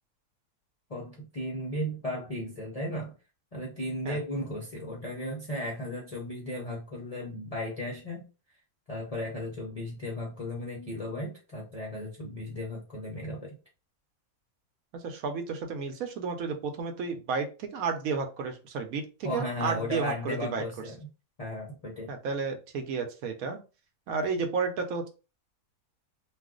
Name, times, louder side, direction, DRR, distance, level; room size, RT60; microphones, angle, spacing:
voice 1, 0.9-3.1 3.5-8.2 8.9-13.5 19.2-21.1 21.4-22.1, left 1 dB, 45° left, -3 dB, 0.4 m, -35 dB
voice 2, 14.9-20.6 22.1-23.6 24.1-25.1, right 5 dB, 70° right, 5 dB, 1.0 m, -32 dB
2.4 x 2.3 x 3.6 m, 0.32 s
omnidirectional pair, 1.6 m